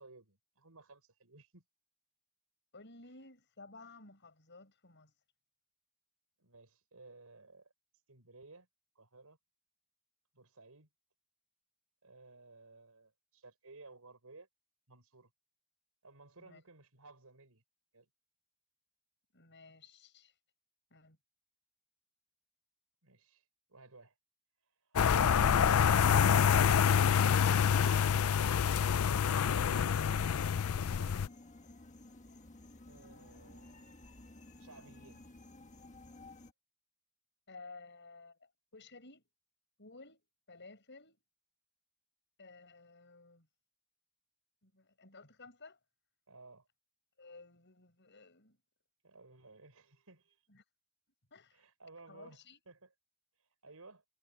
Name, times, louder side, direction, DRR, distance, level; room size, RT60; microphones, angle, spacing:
voice 1, 0.0-1.6 6.4-7.7 8.1-8.7 8.9-9.4 10.3-10.9 12.0-14.5 14.9-15.3 16.0-17.6 17.9-18.1 23.0-24.2 24.6-25.2 25.9-27.0 30.8-31.2 32.7-33.9 34.6-35.3 46.3-46.7 49.0-50.5 51.5-52.9 53.3-54.0, right 3 dB, 85° right, 4.8 m, -57 dB
voice 2, 2.7-5.1 16.4-16.6 19.3-20.3 20.9-21.2 37.5-39.2 39.8-40.2 40.5-41.2 42.4-43.5 44.6-45.8 47.2-48.6 50.5-50.6 51.3-51.6 52.1-52.6, left 3 dB, 55° left, 7.7 m, -55 dB
sound 1, 25.0-31.3, left 7 dB, 75° left, 0.5 m, -27 dB
sound 2, 29.4-36.5, left 2 dB, 35° left, 1.4 m, -54 dB
head